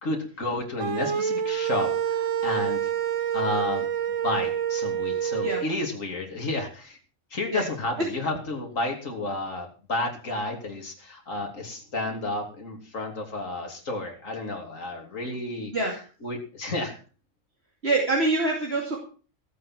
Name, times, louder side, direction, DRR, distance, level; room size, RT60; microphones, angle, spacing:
voice 1, 0.0-2.8 3.3-3.9 4.2-7.0 7.3-15.7 16.2-17.0, left 2 dB, 80° left, 1 dB, 3.4 m, -31 dB
sound 1, 0.8-5.6, right 9 dB, 80° right, 1.5 m, -27 dB
voice 2, 17.8-19.0, right 2 dB, 55° right, -1 dB, 3.1 m, -25 dB
17.0 x 8.6 x 6.0 m, 0.39 s
omnidirectional pair, 1.3 m